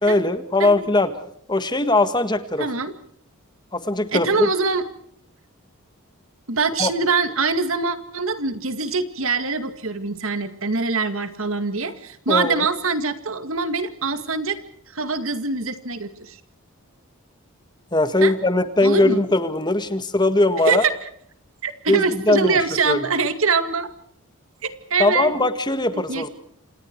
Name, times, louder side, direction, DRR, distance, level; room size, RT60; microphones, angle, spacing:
voice 1, 0.0-1.1 1.5-2.7 3.7-4.5 6.8-6.9 12.3-12.6 17.9-20.8 21.9-23.1 25.0-26.3, left 2 dB, 20° left, 10 dB, 1.7 m, -20 dB
voice 2, 2.6-2.9 4.1-4.8 6.5-14.6 14.9-16.4 18.2-18.3 18.8-19.2 20.7-20.9 21.6-23.9 24.6-25.3 25.9-26.3, right 4 dB, 65° right, 10 dB, 2.2 m, -23 dB
29.0 x 27.5 x 4.7 m, 0.66 s
head